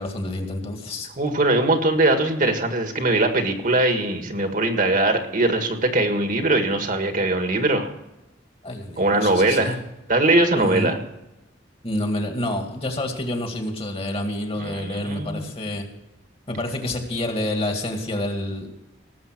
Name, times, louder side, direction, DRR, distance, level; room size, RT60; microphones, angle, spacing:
voice 1, 0.0-1.1 8.6-9.7 10.5-10.9 11.8-15.8 16.5-18.7, left 1 dB, 30° left, 4 dB, 2.1 m, -28 dB
voice 2, 1.2-7.9 9.0-9.8 10.1-11.0 14.6-15.5, right 2 dB, 45° right, 6 dB, 1.8 m, -21 dB
18.0 x 7.6 x 6.0 m, 0.93 s
head